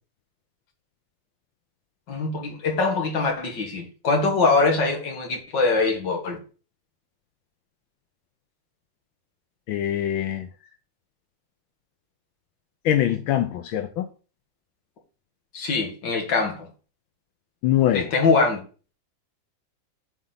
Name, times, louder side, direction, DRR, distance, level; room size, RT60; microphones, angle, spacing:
voice 1, 2.1-6.4 15.5-16.7 17.9-18.6, left 3 dB, 65° left, 2.5 m, -23 dB
voice 2, 9.7-10.5 12.8-14.1 17.6-18.1, left 11 dB, 90° left, 1.5 m, -23 dB
7.3 x 4.0 x 5.6 m
omnidirectional pair, 2.1 m